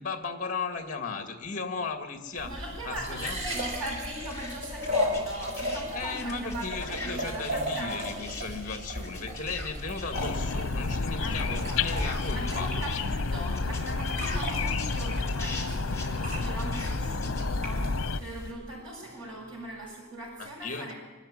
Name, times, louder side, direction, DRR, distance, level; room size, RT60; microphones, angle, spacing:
voice 1, 0.0-2.6 2.8-3.4 5.9-12.7 20.4-20.9, left 4 dB, 35° left, 7 dB, 2.3 m, -36 dB
sound 1, 2.4-18.5, left 1 dB, 30° right, 5.2 m, -36 dB
voice 2, 2.4-8.3 11.2-11.9 12.3-20.9, right 1 dB, 65° right, -7 dB, 7.3 m, -40 dB
sound 2, 3.9-5.8 6.1-10.5 10.8-10.9 11.3-13.0 13.3-13.4 13.6-17.4, left 3 dB, 15° left, 3.3 m, -42 dB
sound 3, 10.1-18.2, left 3 dB, 80° left, 0.8 m, -30 dB
25.0 x 13.0 x 10.0 m, 1.2 s
head